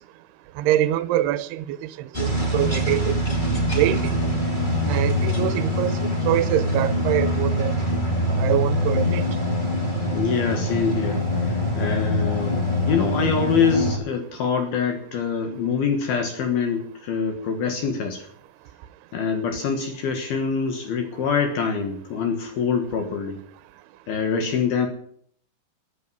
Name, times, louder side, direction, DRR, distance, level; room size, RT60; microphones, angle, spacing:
voice 1, 0.6-3.2 3.7-4.1 4.9-7.8 8.4-9.3, right 13 dB, 80° right, 2.6 m, -24 dB
sound 1, 2.1-14.0, equal, 25° left, 1.1 m, -24 dB
voice 2, 10.1-18.3 19.1-23.4 24.1-24.9, left 6 dB, 65° left, 3.2 m, -25 dB
13.0 x 8.6 x 9.2 m
omnidirectional pair, 5.0 m